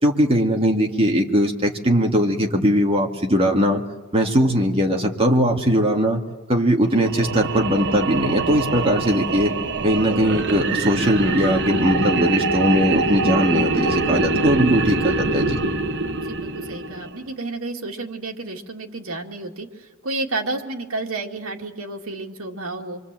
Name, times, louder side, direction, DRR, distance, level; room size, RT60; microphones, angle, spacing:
voice 1, 0.0-3.8 4.1-6.2 6.5-9.5 9.8-15.6, equal, 25° right, 1 dB, 2.2 m, -20 dB
sound 1, 6.9-17.3, right 3 dB, 55° right, 1.3 m, -24 dB
voice 2, 16.1-23.0, right 2 dB, 75° right, 1 dB, 2.3 m, -31 dB
25.5 x 24.5 x 7.6 m, 1.3 s
head